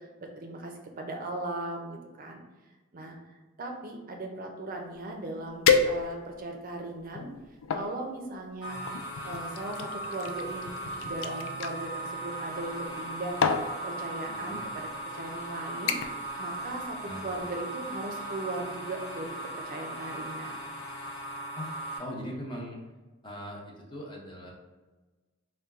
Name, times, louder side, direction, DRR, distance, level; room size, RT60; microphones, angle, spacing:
voice 1, 0.0-2.4 2.9-3.2 3.6-7.3 7.7-8.8 9.2-16.0 16.4-20.6, right 2 dB, 45° right, 2 dB, 0.5 m, -38 dB
sound 1, 5.0-5.1 5.6-6.4 7.0-7.9 8.9-11.7 12.8-13.1 13.4-13.7 14.6-14.8 15.2-15.5 15.9-16.3 16.6-17.0 17.3-17.4, left 5 dB, 85° left, 0.4 m, -29 dB
sound 2, 8.6-22.0, right 1 dB, 65° left, 1.4 m, -38 dB
voice 2, 14.3-14.6 17.1-17.5 21.6-21.7 22.0-22.8 23.2-24.5, equal, 25° left, -1 dB, 0.7 m, -40 dB
4.3 x 2.2 x 3.5 m, 1.2 s
head